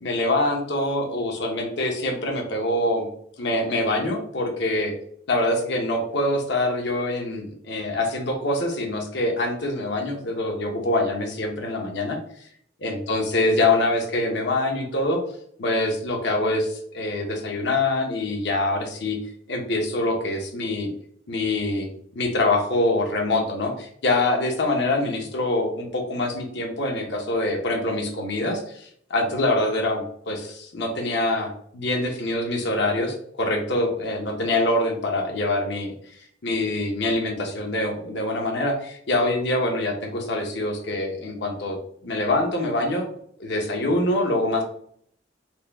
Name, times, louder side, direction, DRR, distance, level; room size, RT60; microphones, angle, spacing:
voice 1, 0.0-3.1 3.4-4.9 5.3-12.2 12.8-15.2 15.6-19.2 19.5-20.9 21.3-21.9 22.1-41.8 42.0-43.1 43.4-44.6, left 2 dB, 60° left, 2 dB, 0.8 m, -25 dB
4.3 x 2.2 x 3.4 m, 0.65 s
head